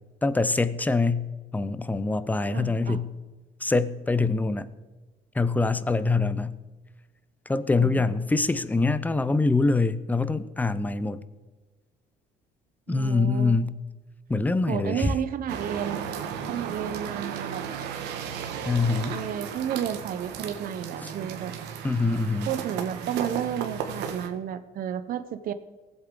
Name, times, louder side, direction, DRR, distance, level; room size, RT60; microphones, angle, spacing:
voice 1, 0.2-1.3 1.5-3.1 3.6-4.7 5.3-6.5 7.5-11.2 12.9-13.7 14.3-15.2 18.6-19.2 21.0-21.1 21.8-22.5, left 3 dB, 10° left, 15 dB, 0.6 m, -24 dB
voice 2, 2.5-3.0 7.8-8.2 12.9-13.6 14.7-16.0 16.5-17.6 19.1-21.5 22.5-25.5, right 9 dB, 60° right, 11 dB, 0.8 m, -32 dB
sound 1, 15.5-24.3, right 7 dB, 90° right, 1.5 m, -35 dB
19.0 x 8.1 x 3.8 m, 1.3 s
cardioid pair, 110°, 17 cm